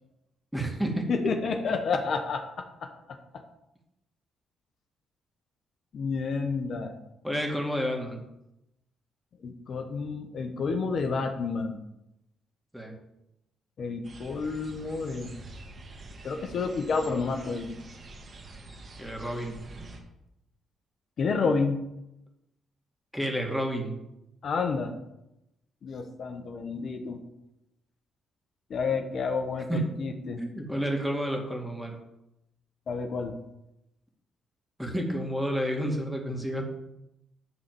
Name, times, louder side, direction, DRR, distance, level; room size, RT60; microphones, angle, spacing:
voice 1, 0.5-1.1 7.2-8.2 12.7-12.9 19.0-19.6 23.1-24.0 29.7-29.9 30.4-32.0 34.8-36.6, equal, 5° right, 1 dB, 2.3 m, -30 dB
voice 2, 1.1-2.9 5.9-7.0 9.4-11.8 13.8-15.3 16.2-17.8 21.2-21.8 24.4-24.9 25.8-27.2 28.7-30.4 32.9-33.3, left 4 dB, 55° left, 5 dB, 1.1 m, -30 dB
sound 1, 14.0-20.0, right 2 dB, 45° right, 2.0 m, -46 dB
11.0 x 4.1 x 7.6 m, 0.88 s
cardioid pair, 90°, 0 cm